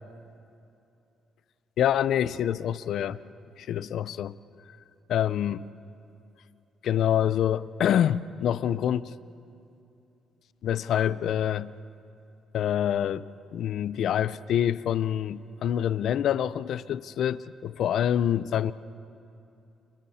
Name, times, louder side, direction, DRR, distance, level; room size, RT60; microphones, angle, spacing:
voice 1, 1.8-3.2 3.6-4.4 5.1-5.7 6.8-9.1 10.6-11.7 12.5-18.7, left 10 dB, 70° left, 16 dB, 0.6 m, -26 dB
30.0 x 30.0 x 4.3 m, 2.7 s
cardioid pair, 90°, 0 cm